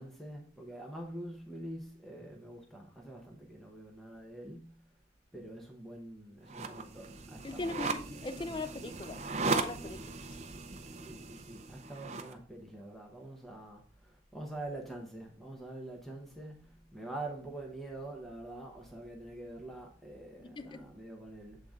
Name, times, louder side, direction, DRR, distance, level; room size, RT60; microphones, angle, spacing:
voice 1, 0.0-4.8 5.3-7.9 11.0-21.6, right 1 dB, ahead, 0.8 m, -45 dB
sound 1, 6.5-12.3, right 3 dB, 35° right, 0.6 m, -37 dB
voice 2, 7.4-10.0 20.4-20.9, left 2 dB, 25° left, 0.3 m, -40 dB
7.5 x 3.9 x 3.6 m
head